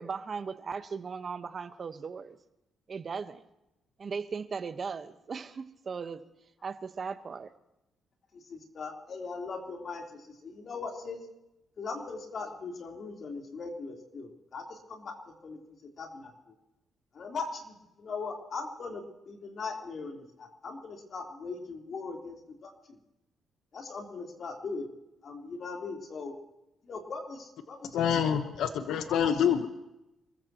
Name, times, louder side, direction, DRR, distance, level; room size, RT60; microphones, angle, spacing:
voice 1, 0.0-2.4 2.9-3.4 4.0-6.2 6.6-7.5, right 5 dB, 45° right, 10 dB, 1.3 m, -37 dB
voice 2, 8.5-10.0 10.4-11.2 11.8-15.1 15.4-15.6 16.0-16.3 17.1-22.4 22.6-22.7 23.7-24.9 25.2-26.3 26.8-28.0, left 4 dB, 55° left, 1 dB, 3.7 m, -39 dB
voice 3, 27.9-29.7, left 8 dB, 80° left, 8 dB, 1.1 m, -26 dB
28.0 x 14.5 x 3.0 m, 0.90 s
cardioid pair, 80°, 0 cm